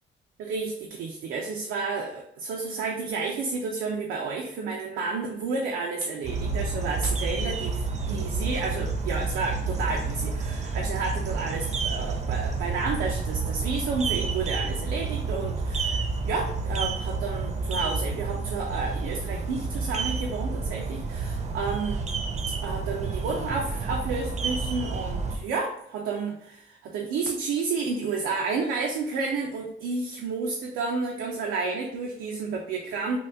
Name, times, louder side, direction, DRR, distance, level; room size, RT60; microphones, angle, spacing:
voice 1, 0.4-22.0 22.6-33.2, right 4 dB, 90° right, 0 dB, 0.4 m, -31 dB
sound 1, 6.2-25.4, right 4 dB, 35° right, 0.5 m, -30 dB
2.9 x 2.2 x 3.2 m, 0.73 s
cardioid pair, 90°, 20 cm